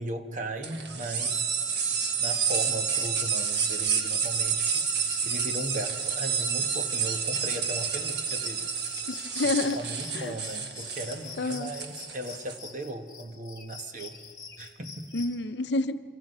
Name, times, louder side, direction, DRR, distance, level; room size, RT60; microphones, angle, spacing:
voice 1, 0.0-1.5 2.2-8.7 9.4-14.2 14.6-15.1, right 1 dB, 40° right, 6 dB, 1.2 m, -37 dB
sound 1, 0.6-12.6, right 6 dB, 70° right, 1.6 m, -29 dB
sound 2, 1.0-15.3, left 4 dB, 20° left, 1.8 m, -45 dB
voice 2, 9.1-9.8 10.1-10.3 11.4-11.7 15.1-16.0, left 2 dB, 70° left, 11 dB, 0.7 m, -28 dB
28.0 x 23.5 x 5.5 m, 2.5 s
head